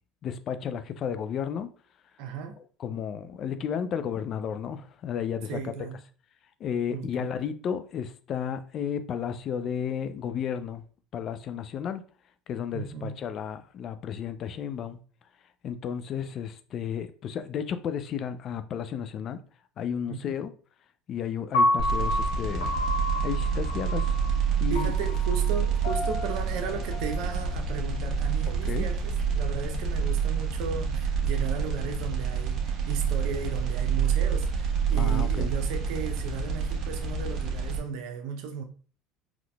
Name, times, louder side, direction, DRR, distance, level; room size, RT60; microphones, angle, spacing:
voice 1, 0.2-1.7 2.8-5.7 6.6-10.8 11.1-12.0 12.5-15.0 15.6-19.4 19.8-20.5 21.1-22.8 23.2-24.1 24.6-24.9 28.7-28.9 34.9-35.5, left 8 dB, 50° left, 0.4 m, -33 dB
voice 2, 2.2-2.5 5.5-6.0 6.9-7.3 12.7-13.1 20.1-20.4 24.7-38.6, right 6 dB, 70° right, 0.7 m, -35 dB
Piano, 21.5-27.7, left 2 dB, 85° left, 0.7 m, -30 dB
sound 1, 21.8-37.8, right 6 dB, 50° right, 1.1 m, -28 dB
3.9 x 3.0 x 2.3 m
hypercardioid pair, 80°, 0 cm